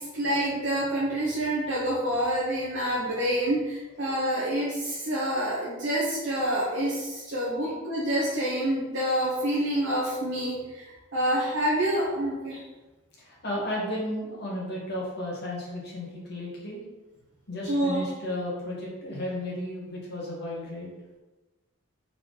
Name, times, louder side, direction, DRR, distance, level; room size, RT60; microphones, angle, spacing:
voice 1, 0.0-10.8 11.1-12.6 17.6-18.0, right 1 dB, 60° right, -6 dB, 0.8 m, -27 dB
voice 2, 13.2-16.8 17.5-20.9, left 1 dB, 55° left, -4 dB, 1.2 m, -33 dB
3.7 x 2.9 x 3.9 m, 1.2 s
head